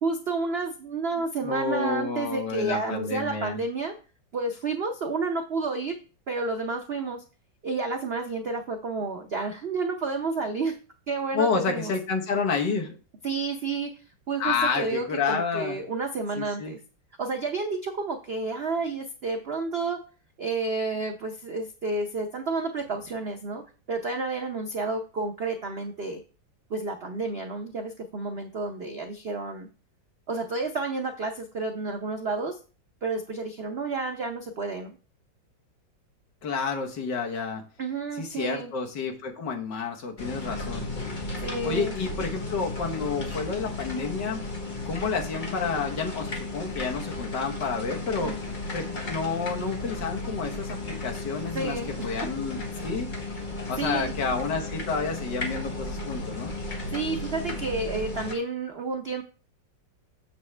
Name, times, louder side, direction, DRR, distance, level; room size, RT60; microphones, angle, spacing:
voice 1, 0.0-3.9 4.3-6.0 6.3-7.2 7.6-10.8 11.1-11.9 13.2-13.9 14.3-16.8 17.2-20.0 20.4-23.6 23.9-26.2 26.7-29.7 30.3-32.6 33.0-35.0 37.8-38.7 41.4-41.9 48.1-48.4 51.5-52.1 53.8-54.1 56.9-59.2, right 3 dB, 90° right, 4 dB, 0.5 m, -30 dB
voice 2, 1.4-3.6 11.3-13.0 14.4-15.8 16.4-16.8 36.4-37.6 38.2-40.9 41.6-44.4 44.8-48.4 48.7-53.1 53.7-56.5, left 5 dB, 65° left, 2 dB, 1.8 m, -30 dB
sound 1, 40.2-58.3, left 2 dB, 30° left, 1.2 m, -34 dB
7.3 x 6.9 x 3.3 m, 0.37 s
omnidirectional pair, 2.1 m